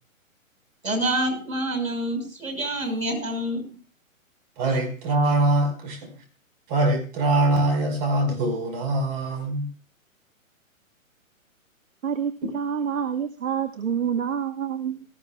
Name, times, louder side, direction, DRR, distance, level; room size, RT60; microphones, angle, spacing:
voice 1, 0.8-3.6, right 1 dB, 85° right, 6.1 m, -27 dB
voice 2, 4.6-6.1 6.7-9.7, right 2 dB, 35° right, 5.2 m, -23 dB
voice 3, 12.0-15.0, right 8 dB, 65° right, 1.4 m, -27 dB
18.5 x 15.0 x 2.4 m
hypercardioid pair, 135°, 41 cm